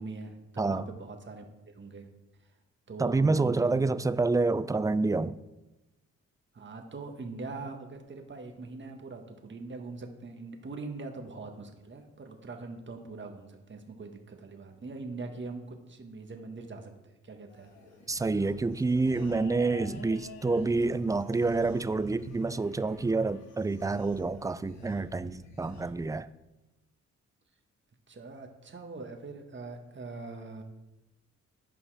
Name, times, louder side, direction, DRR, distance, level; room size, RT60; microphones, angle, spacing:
voice 1, 0.0-1.5 1.7-2.1 2.4-2.5 2.9-4.0 6.5-17.7 28.1-30.6, right 3 dB, 40° right, 1.6 m, -42 dB
voice 2, 3.0-5.4 18.1-26.3, right 3 dB, 10° right, 0.4 m, -28 dB
sound 1, 17.5-24.9, left 3 dB, 85° left, 1.5 m, -52 dB
sound 2, 17.7-25.9, left 3 dB, 60° left, 2.0 m, -51 dB
11.5 x 5.5 x 4.9 m
cardioid pair, 70°, 30 cm